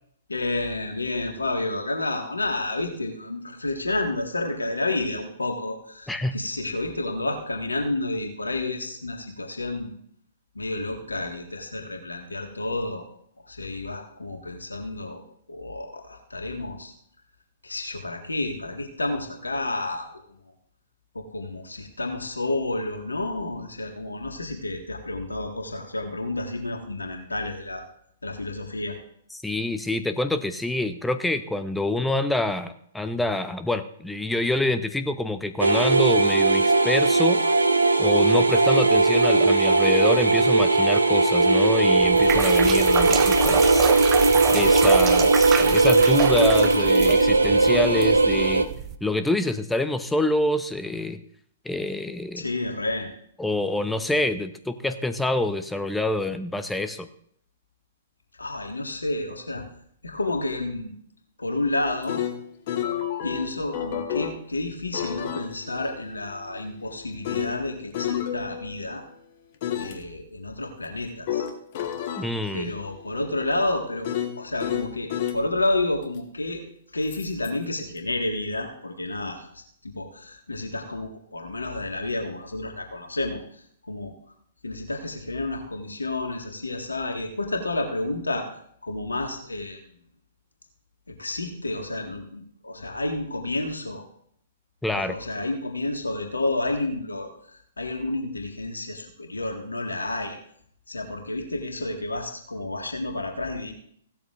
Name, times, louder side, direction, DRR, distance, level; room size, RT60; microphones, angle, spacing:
voice 1, 0.3-9.9 10.6-13.1 13.4-15.2 15.5-16.9 17.6-20.2 21.2-27.9 28.2-29.0 52.4-53.1 58.4-59.7 60.0-60.9 61.4-62.2 63.2-69.0 69.8-71.5 72.5-74.1 74.4-76.6 76.9-84.1 84.6-88.5 88.8-89.8 91.1-94.1 95.0-100.4 100.9-103.7, left 2 dB, 80° left, 3 dB, 1.7 m, -30 dB
voice 2, 6.1-6.4 29.4-37.4 38.0-43.9 44.5-48.7 49.0-51.2 51.6-52.5 53.4-57.1 72.2-72.7 94.8-95.2, left 2 dB, 5° left, 10 dB, 0.7 m, -26 dB
sound 1, 35.6-48.6, right 3 dB, 80° right, 1.0 m, -19 dB
sound 2, 42.0-49.0, right 9 dB, 25° right, 0.8 m, -28 dB
sound 3, 61.8-64.4 64.9-69.0 69.6-70.0 71.3-75.4 77.1-77.5, left 10 dB, 45° left, 1.3 m, -31 dB
16.5 x 12.5 x 2.5 m, 0.67 s
figure-of-eight pair, 115°, 0 cm